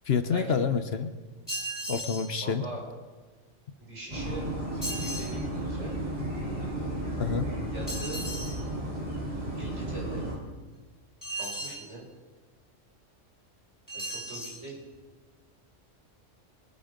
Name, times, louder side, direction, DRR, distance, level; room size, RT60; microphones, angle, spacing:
voice 1, 0.1-1.1 1.9-2.6 7.2-7.5, left 6 dB, 60° left, 9 dB, 1.0 m, -27 dB
sound 1, 1.5-2.3 4.8-5.3 7.9-8.6 11.2-11.8 13.9-14.6, right 1 dB, 15° left, 4.1 m, -36 dB
voice 2, 2.4-2.8 3.8-4.4 4.7-5.9 7.7-8.2 9.5-10.3 11.4-12.0 13.9-14.8, right 2 dB, 70° right, -5 dB, 6.5 m, -41 dB
sound 2, 4.1-10.4, right 1 dB, 30° right, 4.2 m, -33 dB
23.0 x 8.9 x 5.2 m, 1.4 s
omnidirectional pair, 1.3 m